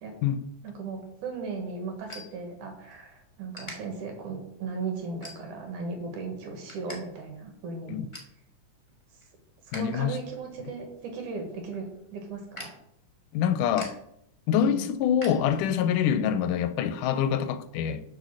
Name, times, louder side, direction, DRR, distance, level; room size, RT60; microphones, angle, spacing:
voice 1, 0.6-8.0 9.7-12.7 14.6-14.8, right 4 dB, 75° right, 3 dB, 2.9 m, -37 dB
sound 1, 0.9-3.0 3.5-3.7 4.3-4.5 5.2-5.8 6.2-7.0 7.3-7.4 7.7-8.4 8.8-9.9 10.2-16.0, left 1 dB, 20° left, 0.7 m, -46 dB
voice 2, 9.7-10.2 13.3-13.9 14.5-18.0, left 9 dB, 90° left, 11 dB, 2.2 m, -25 dB
6.8 x 4.7 x 6.3 m, 0.76 s
omnidirectional pair, 3.6 m